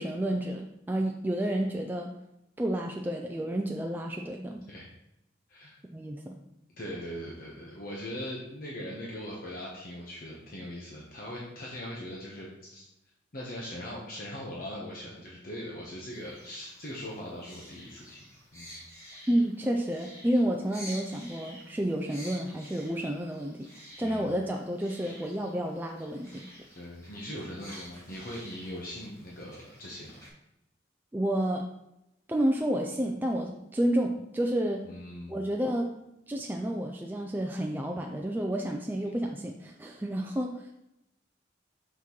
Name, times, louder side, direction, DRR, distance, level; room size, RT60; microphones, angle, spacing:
voice 1, 0.0-2.1 2.6-4.6 5.9-6.4 19.3-26.5 31.1-31.7 32.3-34.9 35.3-35.9 36.3-40.7, right 1 dB, 10° right, 1 dB, 0.3 m, -30 dB
voice 2, 6.8-12.8 13.3-18.8 21.1-21.2 24.0-24.3 25.0-25.2 26.7-30.2 34.8-35.4, equal, 50° left, -3 dB, 1.0 m, -40 dB
sound 1, 16.1-30.3, equal, 15° left, 2.1 m, -50 dB
5.9 x 5.8 x 3.0 m, 0.87 s
head